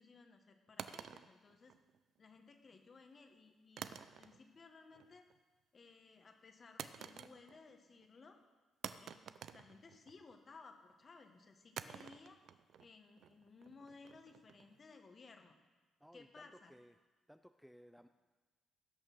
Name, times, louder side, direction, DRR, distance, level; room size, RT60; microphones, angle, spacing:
voice 1, 0.0-1.7 2.2-5.3 5.7-8.4 8.9-9.2 9.5-12.4 12.8-15.5 16.1-16.7, left 4 dB, 40° left, 5 dB, 1.6 m, -59 dB
sound 1, 0.8-2.2 3.8-4.6 4.9-5.4 6.8-7.7 8.0-8.1 8.8-10.4 11.8-14.8, right 8 dB, 70° right, 0.5 m, -50 dB
voice 2, 16.0-16.9 17.3-18.1, equal, ahead, 9 dB, 0.4 m, -60 dB
16.5 x 6.4 x 6.3 m, 1.3 s
cardioid pair, 90°, 0 cm